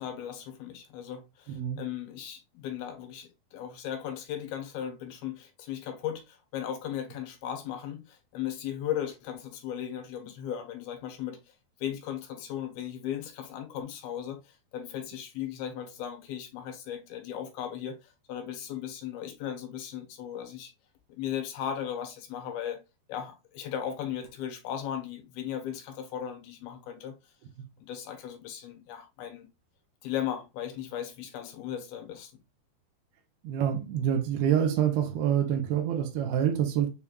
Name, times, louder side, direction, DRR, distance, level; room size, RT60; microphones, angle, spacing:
voice 1, 0.0-11.5 11.8-20.7 21.1-22.8 23.1-27.3 27.8-29.5 30.0-32.3, left 10 dB, 75° left, 2.9 m, -37 dB
voice 2, 1.5-1.8 33.4-36.9, right 9 dB, 80° right, 2.6 m, -26 dB
7.0 x 3.3 x 2.3 m
omnidirectional pair, 4.6 m